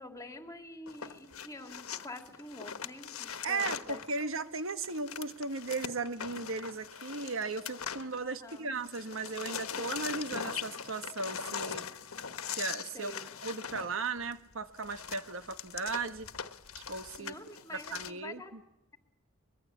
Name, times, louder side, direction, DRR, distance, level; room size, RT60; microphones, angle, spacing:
voice 1, 0.0-4.3 8.2-8.7 12.9-13.2 17.2-18.5, left 2 dB, 15° left, 5 dB, 2.7 m, -47 dB
sound 1, 0.9-8.6 8.8-18.1, left 7 dB, 90° left, 1.4 m, -41 dB
voice 2, 3.4-11.9 12.5-13.1 13.4-16.3 16.9-17.3 17.7-18.6, right 4 dB, 65° right, 9 dB, 1.3 m, -36 dB
24.5 x 22.0 x 8.5 m, 0.87 s
head